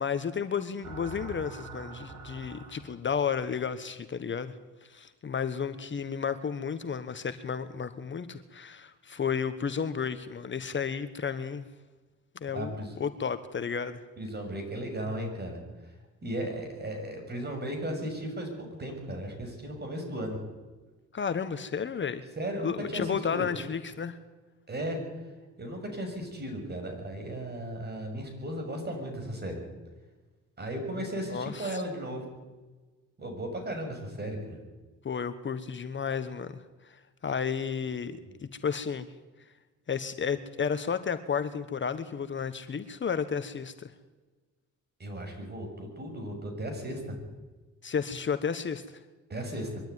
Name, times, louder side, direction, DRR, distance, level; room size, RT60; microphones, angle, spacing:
voice 1, 0.0-4.5 4.8-11.7 12.3-14.0 21.1-22.2 22.6-24.2 31.3-31.8 35.0-36.6 36.8-39.1 39.9-43.9 47.8-48.8, left 6 dB, 40° left, 10 dB, 1.2 m, -32 dB
sound 1, 0.8-3.2, right 5 dB, 80° right, 6.5 m, -44 dB
voice 2, 12.5-13.0 14.2-15.6 16.2-20.4 22.4-23.4 24.7-25.0 25.6-29.6 30.6-32.2 33.2-34.6 45.0-47.1 49.3-49.8, right 1 dB, 35° right, 4 dB, 6.7 m, -36 dB
23.0 x 13.0 x 9.5 m, 1.2 s
cardioid pair, 90°, 30 cm